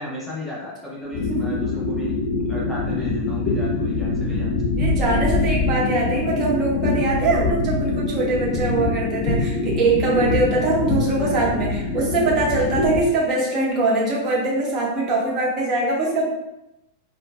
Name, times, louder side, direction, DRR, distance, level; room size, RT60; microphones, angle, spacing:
voice 1, 0.0-2.2 2.4-4.5, left 1 dB, 5° left, -7 dB, 1.0 m, -34 dB
voice 2, 1.0-1.6 4.7-16.3, right 3 dB, 30° right, -5 dB, 1.2 m, -22 dB
sound 1, 1.1-13.0, left 3 dB, 30° left, 1.5 m, -24 dB
4.8 x 2.8 x 2.4 m, 0.91 s
figure-of-eight pair, 90°, 0 cm